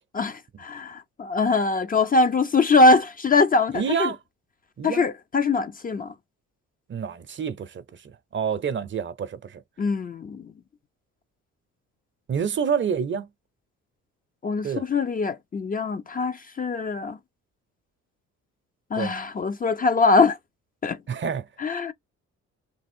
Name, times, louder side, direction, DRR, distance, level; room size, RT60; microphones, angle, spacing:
voice 1, 0.2-4.1 4.8-6.1 9.8-10.5 14.4-17.2 18.9-20.4 20.8-21.0 21.6-21.9, left 3 dB, 30° left, 0.4 m, -22 dB
voice 2, 3.7-4.2 4.8-5.0 6.9-9.6 12.3-13.3 14.6-14.9 18.9-19.1 21.1-21.5, right 7 dB, 40° right, 0.6 m, -28 dB
3.3 x 2.9 x 4.3 m
cardioid pair, 90°, 30 cm